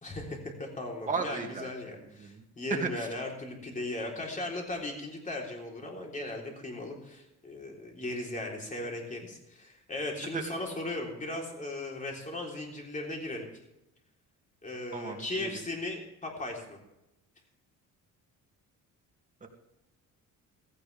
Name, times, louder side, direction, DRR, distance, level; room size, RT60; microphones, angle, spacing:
voice 1, 0.0-13.5 14.6-16.8, left 2 dB, 25° left, 0 dB, 3.8 m, -37 dB
voice 2, 1.1-2.4 2.7-3.1 10.3-10.4 14.9-15.6 19.4-19.5, right 4 dB, 25° right, 1 dB, 2.4 m, -35 dB
16.5 x 15.5 x 3.5 m, 0.89 s
cardioid pair, 135°, 32 cm